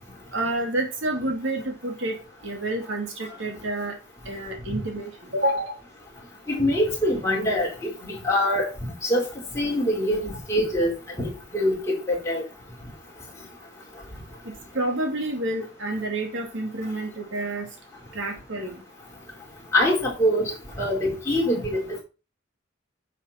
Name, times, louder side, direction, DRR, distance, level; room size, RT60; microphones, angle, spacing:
voice 1, 0.3-3.9 4.3-5.8 14.7-17.7 18.1-18.8, right 1 dB, 70° right, 2.5 m, -29 dB
voice 2, 6.5-7.7 8.0-8.7 9.1-9.2 9.5-10.9 11.2-12.4 19.7-20.4 20.8-21.8, left 1 dB, 15° left, 4.4 m, -23 dB
9.8 x 7.2 x 4.3 m
head